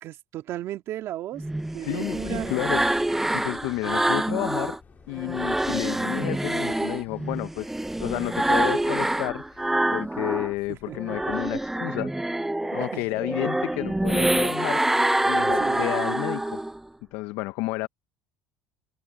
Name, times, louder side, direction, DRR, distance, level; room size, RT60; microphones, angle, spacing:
voice 1, 0.0-1.4 1.7-2.5 3.8-4.0 10.7-11.2 12.9-13.4 15.4-15.9, right 13 dB, 55° right, 2.3 m, -36 dB
sound 1, 1.4-4.8 5.2-10.5 10.9-16.8, right 1 dB, 5° right, 0.5 m, -26 dB
voice 2, 1.8-4.8 5.1-7.7 8.0-9.6 9.9-12.1 12.7-14.8 15.3-16.6 17.1-17.9, left 21 dB, 75° left, 0.7 m, -31 dB
sound 2, 2.0-11.9, left 7 dB, 30° left, 2.9 m, -55 dB
supercardioid pair, 115°, 5 cm